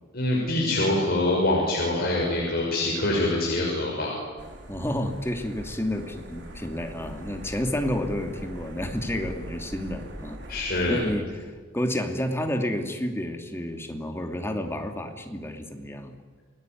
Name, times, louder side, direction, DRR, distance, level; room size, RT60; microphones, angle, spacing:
voice 1, 0.1-4.1 10.5-11.0, left 2 dB, 45° left, -3 dB, 6.5 m, -24 dB
sound 1, 4.4-11.2, equal, 60° right, 4.4 m, -41 dB
voice 2, 4.7-10.6 10.9-11.4 11.7-16.1, left 1 dB, 10° left, 4 dB, 2.7 m, -30 dB
29.5 x 20.0 x 9.4 m, 1.5 s
head